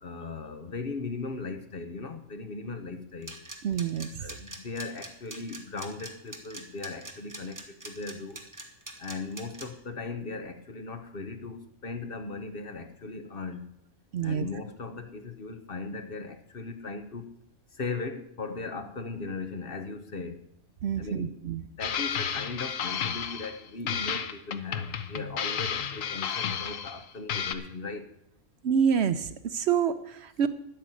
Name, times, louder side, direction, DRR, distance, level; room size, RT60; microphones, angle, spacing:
voice 1, 0.0-3.4 4.2-8.4 9.0-13.7 14.2-17.3 17.7-20.5 21.0-28.1, left 3 dB, 50° left, 8 dB, 1.3 m, -38 dB
sound 1, 3.2-9.7, right 1 dB, 15° right, 1.5 m, -42 dB
voice 2, 3.6-4.1 14.1-14.5 20.8-21.6 28.6-30.5, right 7 dB, 65° right, 13 dB, 0.8 m, -27 dB
sound 2, 21.8-23.6 23.9-27.0 27.3-27.5, left 7 dB, 90° left, 1.3 m, -32 dB
12.0 x 6.3 x 9.1 m, 0.77 s
omnidirectional pair, 1.3 m